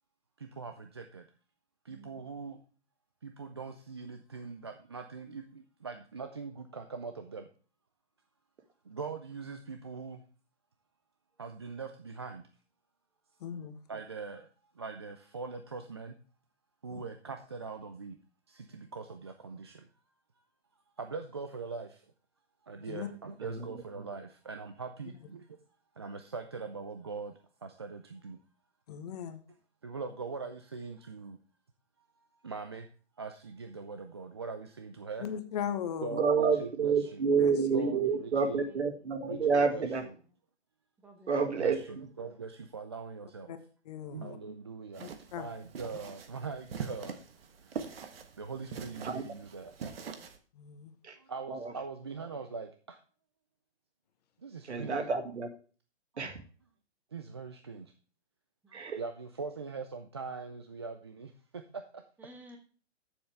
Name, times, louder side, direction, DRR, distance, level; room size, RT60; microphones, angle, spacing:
voice 1, 0.4-1.3 1.8-2.6 3.2-7.5 8.8-10.2 11.4-12.5 13.9-14.5 14.7-16.2 16.8-18.2 18.5-19.9 21.0-22.1 22.6-25.6 25.9-28.4 29.8-31.4 32.0-32.9 33.2-35.3 36.0-37.3 37.7-38.6 39.3-39.8 41.4-43.6 44.1-45.1 45.4-47.2 47.6-47.8 48.4-49.7 51.2-53.0 54.4-55.0 57.1-57.9 58.7-62.0, right 4 dB, 25° right, 6 dB, 0.3 m, -42 dB
voice 2, 13.4-13.8 16.9-17.0 22.8-23.1 28.9-29.4 35.2-36.2 37.4-37.5 43.5-43.6 43.8-44.4 45.0-45.5 50.5-50.9, left 8 dB, 35° left, 8 dB, 1.1 m, -38 dB
voice 3, 22.8-23.2 25.1-25.2 37.8-38.4 41.0-41.3 58.6-58.8 62.2-62.6, right 3 dB, 5° right, 3 dB, 1.1 m, -54 dB
voice 4, 36.1-40.0 41.3-41.8 49.0-49.2 51.0-51.2 51.5-51.7 54.7-55.5 56.2-56.4 58.7-59.0, right 5 dB, 70° right, 5 dB, 2.2 m, -29 dB
sound 1, 44.9-50.4, right 6 dB, 55° right, 1.4 m, -43 dB
12.5 x 7.1 x 3.4 m, 0.40 s
hypercardioid pair, 145°, 35 cm